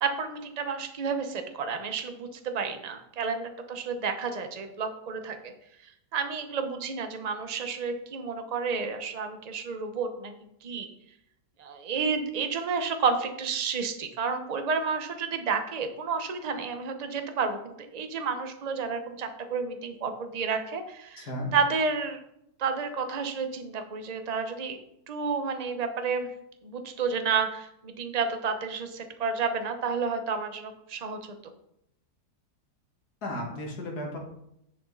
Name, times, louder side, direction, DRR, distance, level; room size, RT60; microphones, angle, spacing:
voice 1, 0.0-5.5 6.1-10.3 10.6-10.9 11.6-22.2 22.6-24.8 25.1-26.3 26.6-31.2, right 5 dB, 30° right, 7 dB, 0.8 m, -31 dB
voice 2, 21.2-21.5 33.2-34.2, left 1 dB, 65° left, -1 dB, 2.6 m, -34 dB
10.5 x 6.6 x 4.0 m, 0.77 s
omnidirectional pair, 1.8 m